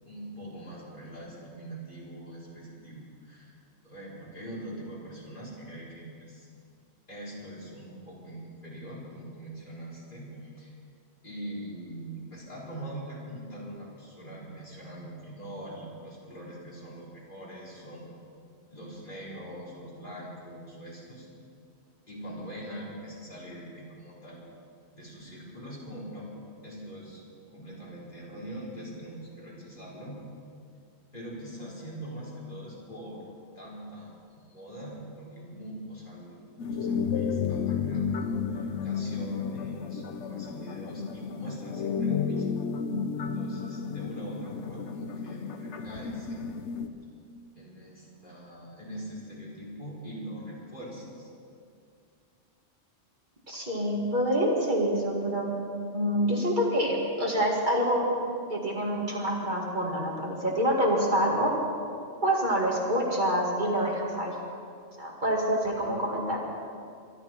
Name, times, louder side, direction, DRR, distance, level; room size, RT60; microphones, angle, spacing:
voice 1, 0.0-3.5 3.8-6.5 7.1-10.7 11.2-18.1 18.7-21.3 22.1-24.4 24.9-26.3 26.6-27.2 27.5-30.2 31.1-33.2 33.6-42.6 43.2-46.7 47.6-51.3, right 1 dB, 45° left, -6 dB, 4.4 m, -43 dB
sound 1, 36.6-46.9, left 6 dB, 85° left, 1.1 m, -32 dB
voice 2, 53.5-55.5 55.9-58.1 58.5-61.5 62.2-64.3 65.0-66.4, equal, 45° right, -2 dB, 2.3 m, -26 dB
24.0 x 12.5 x 4.5 m, 2.3 s
omnidirectional pair, 1.1 m